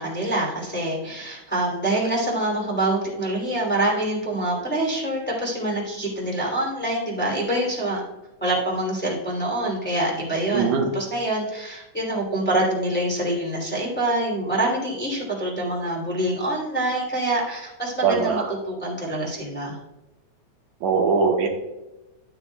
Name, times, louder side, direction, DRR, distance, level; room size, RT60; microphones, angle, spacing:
voice 1, 0.0-8.0 8.4-19.7, right 1 dB, 5° left, -4 dB, 2.4 m, -25 dB
voice 2, 10.5-10.9 18.0-18.5 20.8-21.5, right 5 dB, 80° right, 1 dB, 2.5 m, -21 dB
12.5 x 8.4 x 2.3 m, 0.99 s
omnidirectional pair, 3.3 m